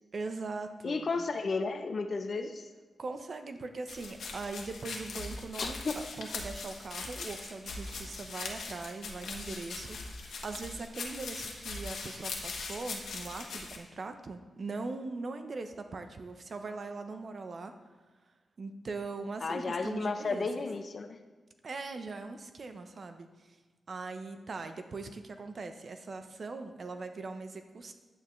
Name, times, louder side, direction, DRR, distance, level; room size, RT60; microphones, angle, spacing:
voice 1, 0.1-1.3 3.0-17.7 18.6-20.5 21.6-23.6 23.9-27.9, right 3 dB, 50° right, 7 dB, 0.8 m, -41 dB
voice 2, 0.8-2.7 5.6-6.0 19.4-21.2, left 4 dB, 50° left, 8 dB, 0.7 m, -33 dB
Animal footsteps on dry leaves, 3.9-13.8, left 3 dB, 90° left, 1.3 m, -41 dB
10.0 x 9.0 x 3.2 m, 1.4 s
wide cardioid pair, 95°, 0 cm